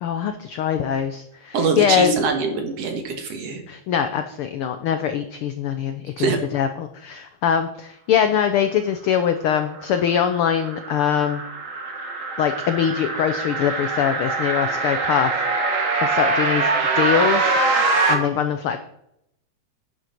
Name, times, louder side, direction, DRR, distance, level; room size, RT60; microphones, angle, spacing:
voice 1, 0.0-2.1 3.7-11.4 12.4-17.6 18.1-18.8, left 8 dB, 80° left, 8 dB, 1.2 m, -23 dB
voice 2, 1.5-3.6 6.2-6.4, right 4 dB, 60° right, 5 dB, 2.5 m, -23 dB
sound 1, 9.8-18.1, right 3 dB, 35° right, 1.3 m, -23 dB
10.5 x 9.5 x 4.5 m, 0.77 s
omnidirectional pair, 3.3 m